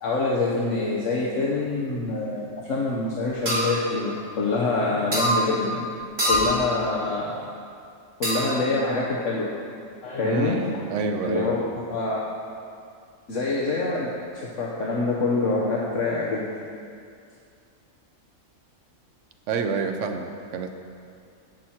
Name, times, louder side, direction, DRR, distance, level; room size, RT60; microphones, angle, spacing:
voice 1, 0.0-5.9 6.3-7.4 8.2-9.5 10.0-10.6 11.2-12.2 13.3-14.1 14.6-16.5, left 3 dB, 65° left, -4 dB, 1.3 m, -25 dB
sound 1, 3.5-3.7 5.1-5.4 6.2-6.5 8.2-8.6, equal, 45° right, 3.3 m, -23 dB
voice 2, 10.2-11.5 19.5-20.7, right 4 dB, 65° right, 5 dB, 1.1 m, -27 dB
17.0 x 6.1 x 4.4 m, 2.4 s
omnidirectional pair, 1.4 m